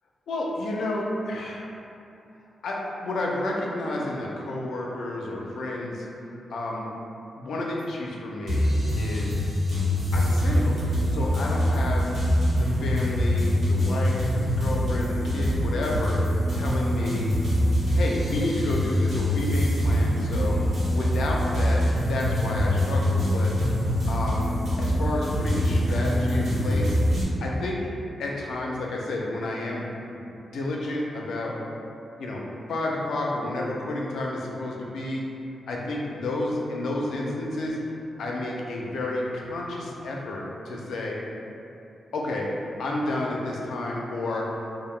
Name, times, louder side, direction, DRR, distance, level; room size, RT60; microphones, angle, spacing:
voice 1, 0.3-1.7 2.6-6.1 6.5-6.9 7.4-9.3 10.1-12.1 12.5-16.1 16.5-17.3 17.9-20.6 20.9-23.5 24.1-27.0 27.4-27.8 28.2-29.9 30.1-30.3 30.5-31.5 32.2-32.4 32.7-35.2 35.7-37.8 38.2-41.2 42.1-42.5 42.8-44.6, left 2 dB, 85° left, -2 dB, 0.4 m, -30 dB
sound 1, 8.5-27.2, equal, 65° right, 0.9 m, -24 dB
2.7 x 2.1 x 3.1 m, 2.7 s
cardioid pair, 90°, 0 cm